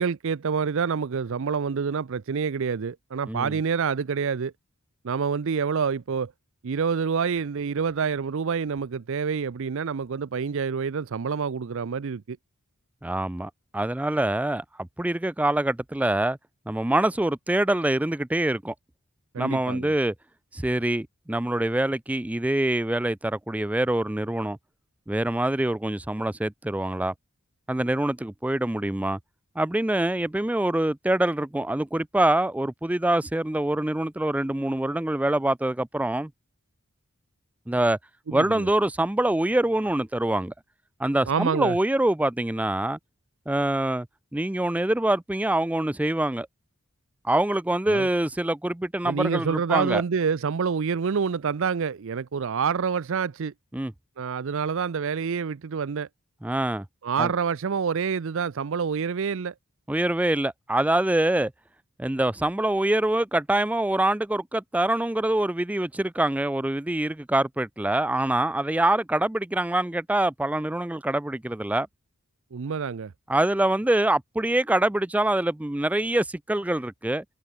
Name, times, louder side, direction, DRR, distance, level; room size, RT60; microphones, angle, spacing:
voice 1, 0.0-4.5 5.0-6.3 6.6-12.4 19.3-19.9 38.3-38.7 41.3-41.8 47.9-48.1 49.0-53.5 54.2-56.1 57.0-59.5 72.5-73.1, right 6 dB, 60° right, 0.5 m, -27 dB
voice 2, 13.0-16.4 16.7-18.7 19.4-20.1 20.5-24.6 25.1-27.1 27.7-29.2 29.6-36.3 37.7-38.0 38.3-40.5 41.0-43.0 43.5-44.1 44.3-46.5 47.2-50.0 53.7-53.9 56.4-56.9 57.2-57.3 59.9-61.5 62.0-71.9 73.3-77.2, right 1 dB, 5° right, 0.4 m, -25 dB
head